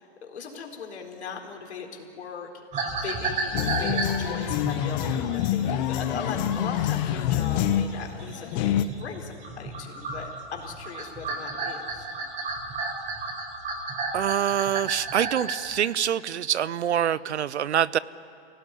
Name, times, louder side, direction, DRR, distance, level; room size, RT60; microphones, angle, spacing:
voice 1, 0.0-2.5 2.8-12.1, left 5 dB, 80° left, 2 dB, 4.2 m, -39 dB
sound 1, 2.7-9.2 9.4-15.8, right 3 dB, 20° right, 3.9 m, -33 dB
sound 2, 3.5-8.8, left 11 dB, 45° left, 1.2 m, -26 dB
voice 2, 14.1-18.0, right 10 dB, 85° right, 19 dB, 0.8 m, -25 dB
26.5 x 17.5 x 9.9 m, 2.5 s
hypercardioid pair, 130°, 33 cm